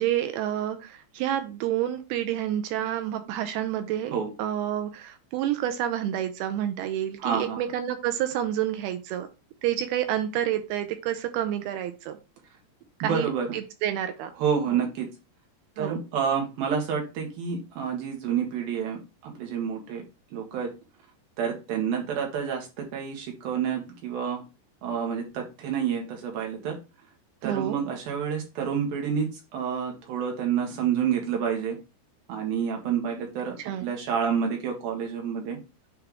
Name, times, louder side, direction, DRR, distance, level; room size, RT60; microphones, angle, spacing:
voice 1, 0.0-4.1 4.4-9.3 9.6-12.2 13.0-14.3 14.7-14.8 15.8-16.0 27.4-27.8 33.6-33.9, right 11 dB, 80° right, 8 dB, 2.5 m, -29 dB
voice 2, 7.2-7.6 13.0-13.5 14.4-15.1 15.8-20.0 20.3-20.7 21.4-24.4 24.8-26.8 27.4-31.8 32.3-35.6, right 7 dB, 65° right, 1 dB, 3.3 m, -29 dB
9.6 x 3.4 x 3.6 m, 0.28 s
omnidirectional pair, 4.8 m